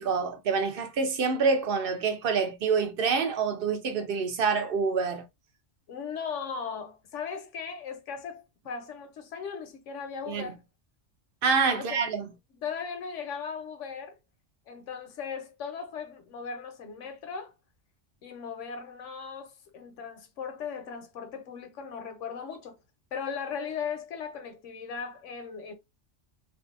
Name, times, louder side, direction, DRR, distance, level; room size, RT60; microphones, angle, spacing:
voice 1, 0.0-5.3 10.3-10.5 11.4-12.2, right 5 dB, 60° right, 0.7 m, -27 dB
voice 2, 5.9-10.6 11.7-14.2 14.7-17.5 18.2-22.8 23.1-25.7, left 6 dB, 80° left, 1.1 m, -38 dB
2.6 x 2.3 x 2.5 m
omnidirectional pair, 1.3 m